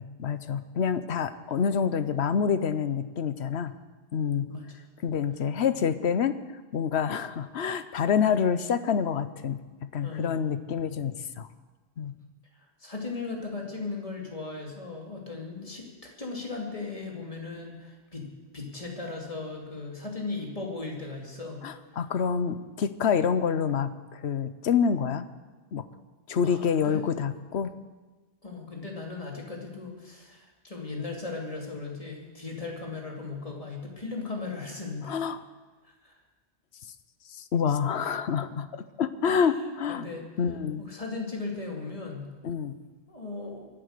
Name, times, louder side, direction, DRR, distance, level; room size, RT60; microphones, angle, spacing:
voice 1, 0.0-3.7 4.1-4.5 5.0-6.4 6.7-11.5 12.0-12.1 21.6-25.3 25.7-25.8 26.3-27.7 35.1-35.4 37.4-40.0 40.4-40.8 42.4-42.8, left 7 dB, 75° left, 12 dB, 1.1 m, -27 dB
voice 2, 10.0-10.4 12.5-21.6 26.4-27.1 28.4-35.2 35.8-36.2 39.2-39.6 39.9-40.2 40.8-42.3 43.1-43.7, left 3 dB, 30° left, -1 dB, 2.9 m, -37 dB
23.5 x 8.5 x 6.7 m, 1.3 s
omnidirectional pair, 1.1 m